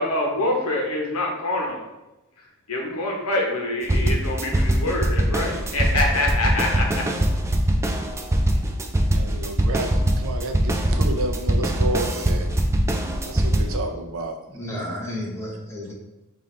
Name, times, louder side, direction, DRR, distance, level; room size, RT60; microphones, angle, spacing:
voice 1, 0.0-1.8 2.4-7.0, left 1 dB, 85° left, 0 dB, 1.0 m, -25 dB
sound 1, 3.9-13.8, right 1 dB, 15° right, 0.3 m, -22 dB
voice 2, 9.1-12.5 13.2-14.4, right 2 dB, 65° right, 4 dB, 0.5 m, -30 dB
voice 3, 14.5-15.9, left 1 dB, 15° left, -3 dB, 0.9 m, -32 dB
5.4 x 2.6 x 3.2 m, 1.0 s
head